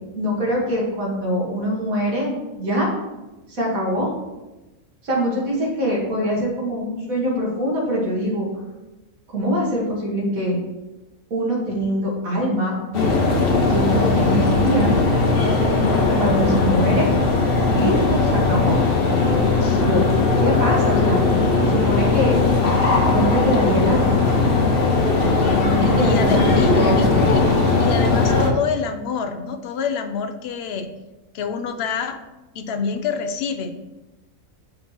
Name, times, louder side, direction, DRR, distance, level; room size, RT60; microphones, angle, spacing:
voice 1, 0.2-2.9 3.5-4.1 5.0-8.5 9.3-10.6 11.3-12.8 13.7-14.9 16.1-17.1 17.7-18.8 19.8-20.1 20.4-21.2 21.6-22.3 23.1-24.2 25.6-27.3, equal, 85° right, -3 dB, 2.1 m, -23 dB
sound 1, 12.9-28.5, left 3 dB, 50° left, 1.0 m, -18 dB
voice 2, 25.8-27.5 27.8-30.9 31.3-32.2 32.5-33.7, left 6 dB, 65° left, 9 dB, 0.6 m, -27 dB
6.3 x 3.0 x 5.7 m, 1.1 s
omnidirectional pair, 1.4 m